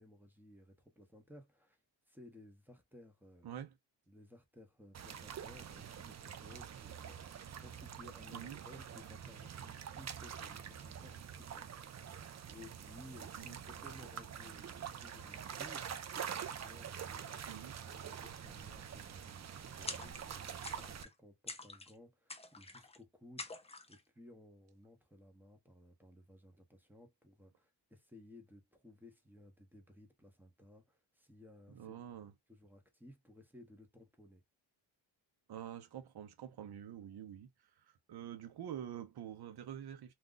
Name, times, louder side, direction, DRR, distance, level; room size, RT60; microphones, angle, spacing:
voice 1, 0.0-1.8 2.1-3.5 4.1-12.2 12.5-15.9 16.4-23.5 23.9-34.4, left 1 dB, 5° right, 0.9 m, -58 dB
voice 2, 3.4-3.8 8.3-8.6 13.4-13.6 17.5-17.8 31.7-32.3 35.5-37.5 37.8-40.1, right 10 dB, 55° right, 0.8 m, -47 dB
sound 1, 4.9-21.0, right 8 dB, 40° right, 0.5 m, -46 dB
sound 2, 19.9-20.3 20.6-21.1 21.5-21.9 22.3-23.0 23.4-24.0, left 3 dB, 15° left, 0.6 m, -47 dB
2.5 x 2.3 x 3.8 m
cardioid pair, 95°, 46 cm